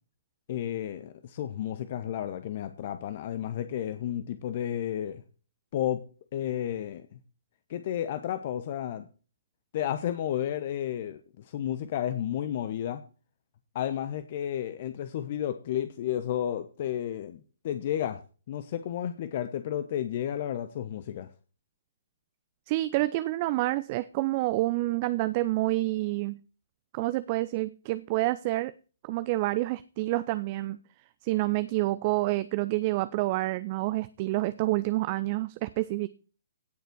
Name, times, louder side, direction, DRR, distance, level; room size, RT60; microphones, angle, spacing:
voice 1, 0.5-5.2 5.7-6.0 6.3-7.2 7.7-9.1 9.7-13.0 13.7-18.2 18.5-21.3, left 10 dB, 40° left, 11 dB, 1.0 m, -32 dB
voice 2, 22.7-26.4 26.9-28.7 29.0-30.8 31.2-36.1, right 18 dB, 35° right, 14 dB, 0.6 m, -28 dB
17.5 x 6.8 x 4.6 m, 0.36 s
figure-of-eight pair, 125°, 0 cm